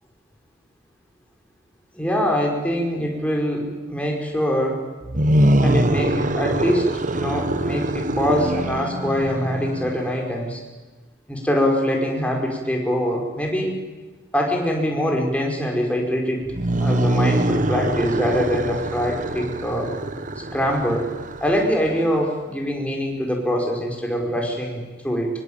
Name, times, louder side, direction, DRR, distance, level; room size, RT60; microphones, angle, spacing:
voice 1, 2.0-4.8 5.6-6.9 7.1-10.6 11.3-13.7 14.3-16.5 16.8-19.9 20.5-21.1 21.4-25.3, equal, 5° left, 0 dB, 5.2 m, -23 dB
sound 1, 5.0-10.2 16.4-22.1, right 1 dB, 40° right, 1.3 m, -23 dB
25.0 x 24.0 x 8.9 m, 1.2 s
head